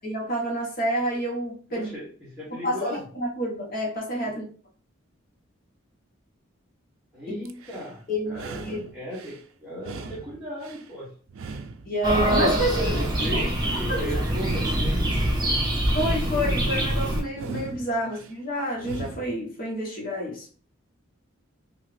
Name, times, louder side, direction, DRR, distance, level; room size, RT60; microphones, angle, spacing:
voice 1, 0.0-1.9 2.5-4.5 7.3-7.4 8.1-8.8 10.0-10.1 11.8-13.0 13.9-14.1 15.9-20.5, equal, 45° left, -3 dB, 1.0 m, -29 dB
voice 2, 1.7-3.0 4.2-4.4 7.1-11.1 12.7-15.0, equal, 5° right, -9 dB, 1.0 m, -37 dB
sound 1, 7.4-7.9 8.3-9.4 9.8-10.9 11.3-12.4 12.8-13.9 14.3-15.4 15.8-16.9 17.3-18.3 18.8-19.4, right 4 dB, 75° right, 0.3 m, -40 dB
sound 2, 12.0-17.2, right 1 dB, 20° right, 0.7 m, -24 dB
2.8 x 2.4 x 3.2 m, 0.42 s
head